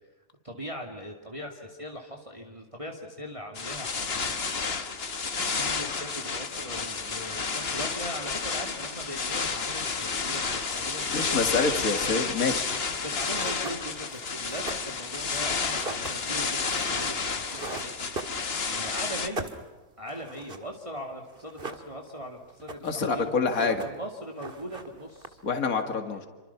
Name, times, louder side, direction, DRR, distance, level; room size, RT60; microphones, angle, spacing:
voice 1, 0.4-12.3 13.0-19.5 20.0-25.4 26.1-26.3, equal, 20° right, 1 dB, 2.5 m, -40 dB
sound 1, 3.5-19.3, left 4 dB, 40° left, 1.6 m, -31 dB
voice 2, 11.1-12.8 22.8-23.8 25.4-26.3, left 4 dB, 65° left, 6 dB, 2.5 m, -27 dB
sound 2, 13.0-13.1 13.3-18.8 19.1-21.0 21.3-22.2 22.5-23.1 23.4-24.1 24.4-25.6, right 2 dB, 35° right, 2.1 m, -40 dB
29.0 x 25.5 x 5.8 m, 1.2 s
omnidirectional pair, 1.6 m